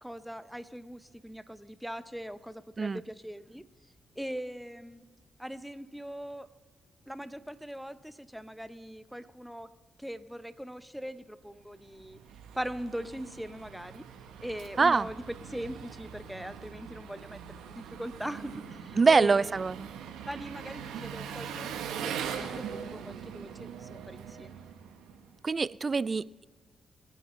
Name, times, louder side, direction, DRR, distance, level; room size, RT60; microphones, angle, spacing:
voice 1, 0.0-3.6 4.1-5.1 5.4-6.5 7.1-9.7 10.0-12.2 12.5-14.0 14.4-19.5 20.3-22.1 22.4-24.6, equal, ahead, 12 dB, 0.9 m, -41 dB
Engine, 11.8-25.3, right 8 dB, 85° right, 1.0 m, -42 dB
voice 2, 14.8-15.1 19.0-19.9 25.4-26.4, right 4 dB, 45° right, 21 dB, 0.3 m, -24 dB
23.5 x 9.4 x 3.2 m, 1.4 s
hypercardioid pair, 40°, 0 cm